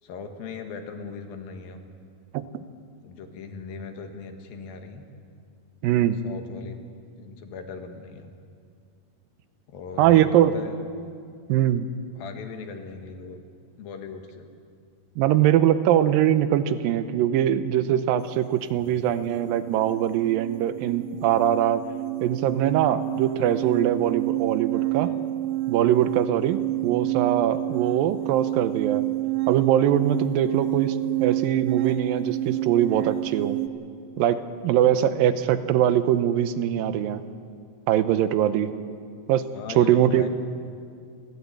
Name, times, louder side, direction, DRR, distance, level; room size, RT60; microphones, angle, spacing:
voice 1, 0.0-1.8 3.0-5.0 6.2-6.8 7.2-8.3 9.7-10.7 12.1-13.4 13.8-14.5 18.8-19.2 39.5-40.3, left 5 dB, 80° left, 5 dB, 3.3 m, -39 dB
voice 2, 5.8-6.2 10.0-10.5 11.5-11.9 15.2-21.8 22.2-25.1 25.7-29.1 29.5-33.6 34.2-37.2 37.9-38.7 39.3-39.4 39.8-40.3, right 11 dB, 90° right, 12 dB, 2.5 m, -22 dB
sound 1, 18.9-19.0 19.3-33.7, right 16 dB, 75° right, 1.6 m, -29 dB
29.5 x 12.5 x 8.4 m, 2.3 s
omnidirectional pair, 4.1 m